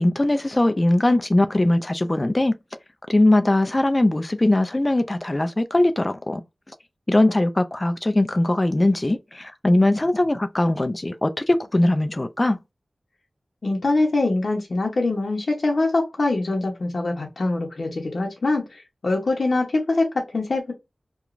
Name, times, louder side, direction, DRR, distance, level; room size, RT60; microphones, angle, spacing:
voice 1, 0.0-2.6 3.1-6.4 7.1-12.6, left 1 dB, 25° left, 0.3 m, -20 dB
voice 2, 13.6-20.7, left 2 dB, 70° left, 0.7 m, -23 dB
3.0 x 2.2 x 2.5 m
wide cardioid pair, 75°, 0 cm